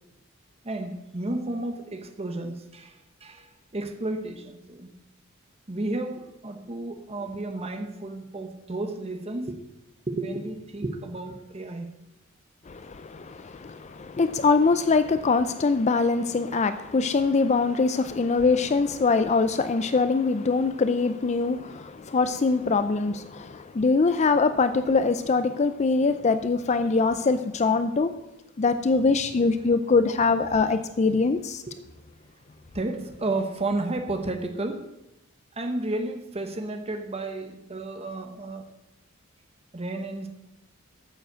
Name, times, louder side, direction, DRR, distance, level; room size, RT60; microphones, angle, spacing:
voice 1, 0.6-5.0 5.7-9.6 10.1-11.9 31.7-31.8 32.7-34.9 35.5-38.7 39.7-40.3, right 2 dB, 30° right, 6 dB, 1.0 m, -32 dB
voice 2, 12.7-28.1 28.6-31.6, left 4 dB, 35° left, 11 dB, 0.4 m, -23 dB
9.2 x 7.7 x 6.3 m, 0.96 s
head